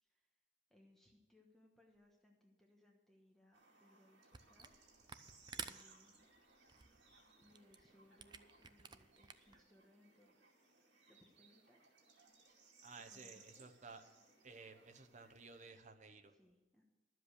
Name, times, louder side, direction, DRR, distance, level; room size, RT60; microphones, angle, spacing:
voice 1, 0.7-4.7 5.5-6.3 7.4-10.4 11.1-11.8 13.1-13.6 16.3-16.8, left 1 dB, ahead, -1 dB, 1.2 m, -69 dB
sound 1, 3.5-15.7, right 4 dB, 70° right, 2.4 m, -66 dB
Camera, 4.3-4.8 5.0-9.6, right 6 dB, 25° right, 0.5 m, -52 dB
voice 2, 12.8-14.0 14.4-16.3, right 4 dB, 40° right, 7 dB, 0.9 m, -56 dB
11.5 x 7.7 x 6.5 m, 1.2 s
head